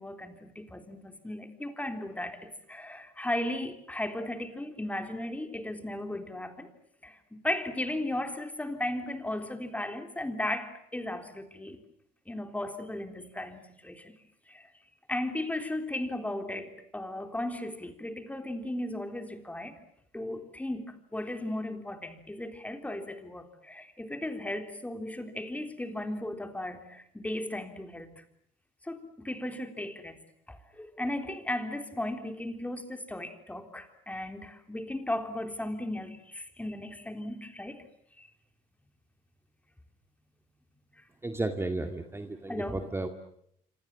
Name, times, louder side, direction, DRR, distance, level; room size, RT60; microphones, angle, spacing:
voice 1, 0.0-6.7 7.0-11.8 12.3-14.2 14.5-14.7 15.1-19.8 20.1-28.2 28.8-30.2 30.5-37.8 38.2-38.3 41.0-41.1 42.5-42.8, left 1 dB, 10° left, 3.7 m, -36 dB
voice 2, 41.2-43.1, right 2 dB, 15° right, 2.1 m, -33 dB
27.0 x 26.5 x 7.5 m
cardioid pair, 110°, 17 cm